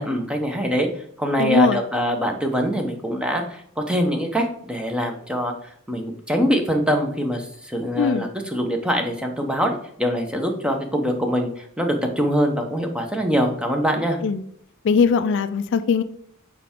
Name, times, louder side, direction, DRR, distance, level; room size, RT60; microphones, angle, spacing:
voice 1, 0.0-14.2, equal, 5° right, 3 dB, 0.9 m, -24 dB
voice 2, 1.4-1.8 8.0-8.3 14.2-14.4 14.8-16.0, left 5 dB, 60° left, 12 dB, 0.4 m, -20 dB
6.6 x 4.6 x 3.7 m, 0.68 s
head